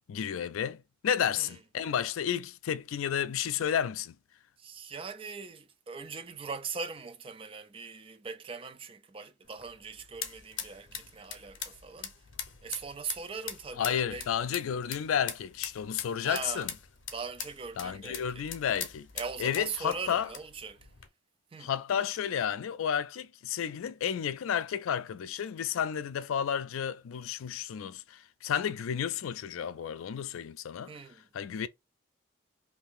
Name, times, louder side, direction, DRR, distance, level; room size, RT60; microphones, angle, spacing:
voice 1, 0.1-4.1 13.8-16.7 17.8-19.1 19.4-20.3 21.6-30.9 31.3-31.7, left 8 dB, 85° left, 0.4 m, -32 dB
voice 2, 4.6-12.1 12.6-14.3 16.2-16.7 17.1-18.4 19.1-20.9 21.5-21.7 30.9-31.2, right 5 dB, 25° right, 0.3 m, -40 dB
sound 1, 9.4-21.1, left 8 dB, 65° left, 0.7 m, -43 dB
2.7 x 2.6 x 3.5 m
head